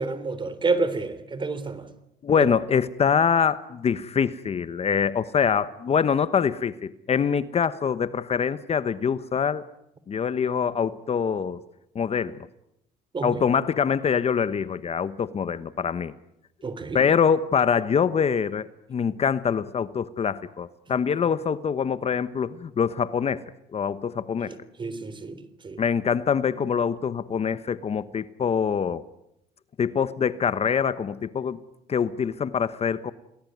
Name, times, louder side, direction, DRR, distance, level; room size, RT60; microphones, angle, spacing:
voice 1, 0.0-1.9 13.1-13.4 16.6-17.0 24.5-25.8, right 3 dB, 30° right, 3.6 m, -29 dB
voice 2, 2.2-9.6 10.1-11.6 11.9-12.4 13.2-16.1 16.9-23.4 23.7-24.5 25.8-29.0 29.8-31.6 31.9-33.1, left 7 dB, 35° left, 1.1 m, -24 dB
29.5 x 19.5 x 9.4 m
cardioid pair, 110°, 17 cm